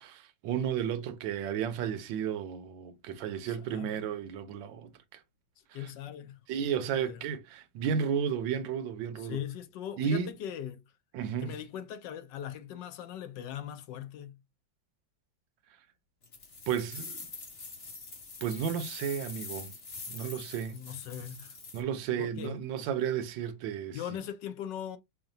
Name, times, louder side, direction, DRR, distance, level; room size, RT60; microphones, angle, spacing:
voice 1, 0.0-5.2 5.7-5.9 6.5-9.4 10.0-10.3 11.1-11.6 16.7-17.2 18.4-19.7 20.1-20.8 21.7-24.2, right 8 dB, 80° right, 1.4 m, -33 dB
voice 2, 3.4-4.0 5.7-6.4 6.8-7.2 9.2-10.8 11.4-14.4 20.7-21.6 22.2-22.6 23.9-25.0, left 10 dB, 75° left, 1.2 m, -40 dB
sound 1, 16.2-21.8, left 3 dB, 35° left, 1.2 m, -44 dB
5.8 x 2.3 x 2.6 m
omnidirectional pair, 2.0 m